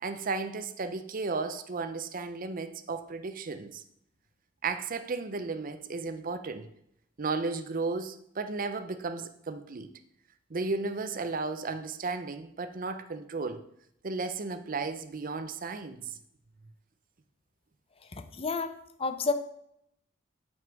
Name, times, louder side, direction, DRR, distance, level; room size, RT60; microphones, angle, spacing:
voice 1, 0.0-3.8 4.6-6.7 7.2-9.9 10.5-13.6 14.0-16.2, right 4 dB, 45° right, 0.6 m, -34 dB
voice 2, 18.1-19.3, left 4 dB, 30° left, 0.6 m, -31 dB
7.7 x 5.6 x 4.6 m
head